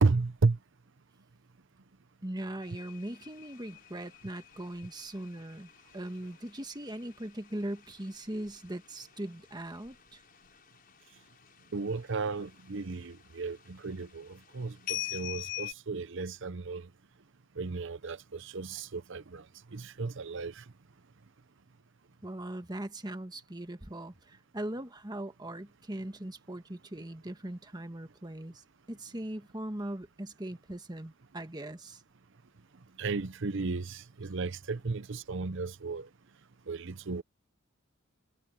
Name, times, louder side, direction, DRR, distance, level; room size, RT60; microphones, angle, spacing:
voice 1, 0.0-0.6 11.7-16.9 17.6-19.4 19.7-20.6 33.0-36.1 36.7-37.2, right 4 dB, 60° right, 0.7 m, -33 dB
voice 2, 2.2-10.2 22.2-32.0, right 1 dB, 20° right, 1.5 m, -40 dB
sound 1, 2.6-10.9 11.2-11.6 12.0-13.1 13.4-14.0 14.9-15.7, left 16 dB, 45° left, 6.2 m, -44 dB
head